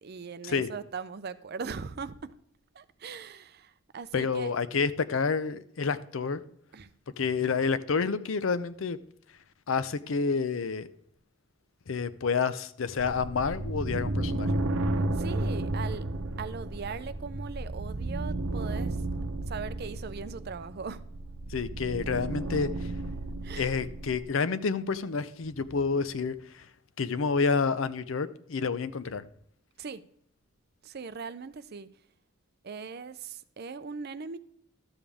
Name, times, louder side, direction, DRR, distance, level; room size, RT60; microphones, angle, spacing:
voice 1, 0.0-2.3 2.7-4.5 6.7-6.9 15.1-16.0 16.4-19.0 19.5-21.0 23.4-23.8 29.8-30.0 30.8-31.9 32.6-34.4, right 5 dB, 50° right, 0.5 m, -39 dB
voice 2, 4.1-6.4 7.2-9.0 9.7-10.9 11.9-14.5 21.5-22.7 23.6-26.6 27.0-29.2, left 5 dB, 80° left, 0.6 m, -29 dB
sound 1, 13.0-24.2, right 2 dB, 85° right, 0.8 m, -33 dB
12.5 x 7.2 x 3.5 m
head